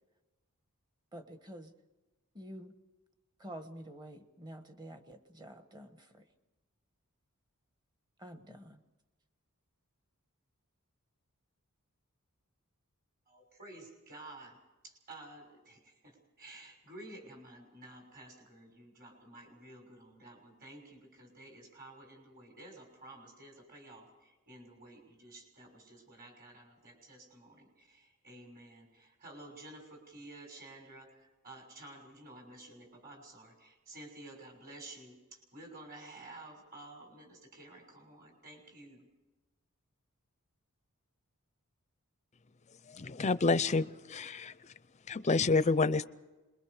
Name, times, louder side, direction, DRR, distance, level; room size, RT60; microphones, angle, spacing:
voice 1, 1.1-1.7 2.3-2.7 3.4-6.3 8.2-8.8, right 1 dB, 20° right, 8 dB, 1.3 m, -48 dB
voice 2, 13.3-14.6 14.8-39.0, right 2 dB, 40° right, 2 dB, 6.2 m, -52 dB
voice 3, 42.9-44.5 45.1-46.1, left 3 dB, 30° left, 14 dB, 0.6 m, -28 dB
26.5 x 22.0 x 5.0 m, 1.1 s
head